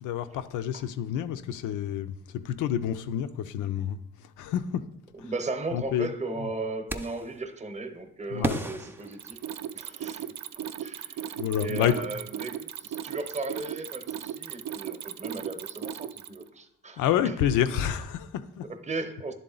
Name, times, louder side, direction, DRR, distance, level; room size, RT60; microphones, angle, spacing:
voice 1, 0.0-2.1 2.4-4.0 4.4-4.6 5.7-6.1 8.3-8.6 11.4-12.0 17.0-18.6, left 10 dB, 85° left, 0.5 m, -28 dB
voice 2, 5.1-9.4 9.7-10.3 10.8-17.3 18.7-19.3, right 3 dB, 25° right, 0.8 m, -36 dB
sound 1, 6.9-7.4 8.4-9.9, right 2 dB, 5° right, 0.4 m, -34 dB
Mechanisms, 9.0-16.5, right 10 dB, 65° right, 0.5 m, -37 dB
10.5 x 3.7 x 3.9 m
cardioid pair, 90°, 30 cm